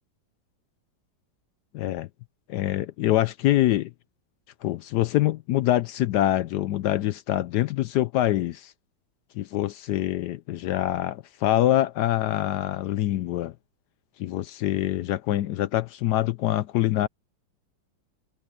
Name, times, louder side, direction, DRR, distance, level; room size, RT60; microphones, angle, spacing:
voice 1, 1.7-2.1 2.5-3.9 4.6-8.7 9.4-13.5 14.2-17.1, left 14 dB, 75° left, 0.9 m, -25 dB
omnidirectional pair, 2.2 m